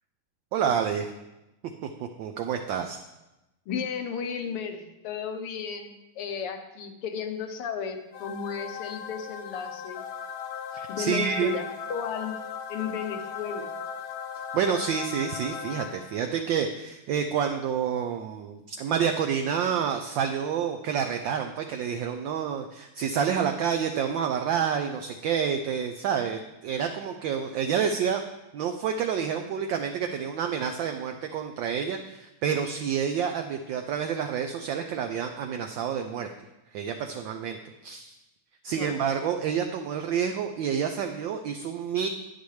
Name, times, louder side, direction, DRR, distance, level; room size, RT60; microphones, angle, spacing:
voice 1, 0.5-1.1 1.8-3.0 10.7-11.6 14.5-28.2 28.5-36.3 36.7-38.2 38.6-42.1, right 7 dB, 70° right, 5 dB, 1.2 m, -28 dB
voice 2, 3.7-10.0 10.9-11.6 11.9-12.4 12.7-13.7 38.7-39.0, left 6 dB, 90° left, 6 dB, 1.9 m, -34 dB
sound 1, 8.1-16.4, left 7 dB, 75° left, 1.5 m, -38 dB
10.5 x 9.9 x 3.2 m, 0.97 s
omnidirectional pair, 2.4 m